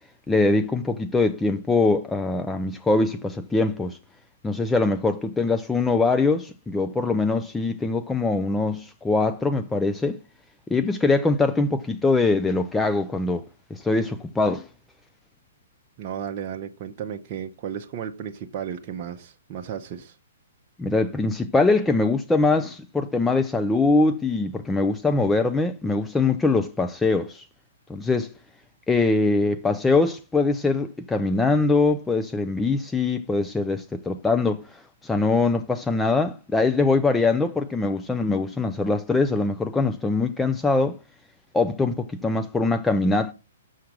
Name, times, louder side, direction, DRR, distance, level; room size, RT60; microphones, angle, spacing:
voice 1, 0.3-4.0 4.4-10.2 10.7-13.4 13.7-14.7 20.8-27.5 27.9-28.3 28.9-41.0 41.5-43.3, left 3 dB, 10° left, 0.5 m, -22 dB
voice 2, 16.0-20.2, right 8 dB, 40° right, 0.7 m, -34 dB
6.4 x 5.7 x 6.0 m
figure-of-eight pair, 120°, 0 cm